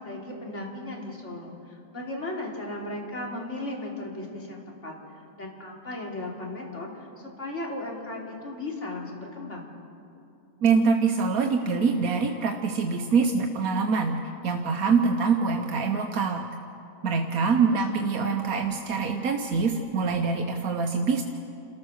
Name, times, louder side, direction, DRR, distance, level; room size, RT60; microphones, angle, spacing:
voice 1, 0.0-9.7 17.5-18.1, left 2 dB, 55° left, -1 dB, 3.5 m, -36 dB
voice 2, 10.6-16.5 17.0-21.2, right 5 dB, 80° right, 4 dB, 1.5 m, -24 dB
28.5 x 14.0 x 6.4 m, 2.6 s
omnidirectional pair, 1.5 m